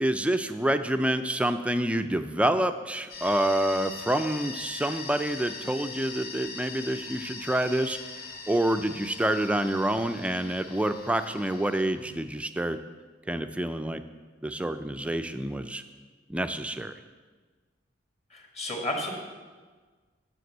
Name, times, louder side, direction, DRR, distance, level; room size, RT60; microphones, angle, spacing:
voice 1, 0.0-8.0 8.5-12.8 13.3-14.0 14.4-15.8 16.3-16.9, right 1 dB, 5° right, 9 dB, 0.3 m, -27 dB
sound 1, 3.1-11.8, left 3 dB, 55° left, 1.6 m, -41 dB
voice 2, 18.3-19.1, left 1 dB, 35° left, 1 dB, 1.7 m, -32 dB
7.9 x 6.1 x 7.8 m, 1.4 s
head